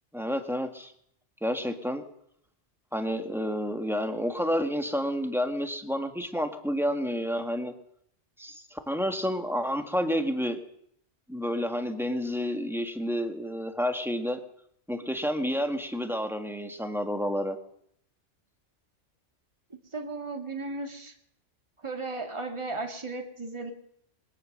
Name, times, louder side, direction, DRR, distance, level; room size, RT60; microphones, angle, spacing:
voice 1, 0.1-0.9 1.4-2.0 2.9-7.7 8.4-10.6 11.3-14.4 14.9-17.6, equal, ahead, 6 dB, 1.8 m, -30 dB
voice 2, 19.7-21.1 21.8-23.7, right 3 dB, 25° right, 4 dB, 2.0 m, -35 dB
21.5 x 19.0 x 6.6 m, 0.70 s
omnidirectional pair, 1.2 m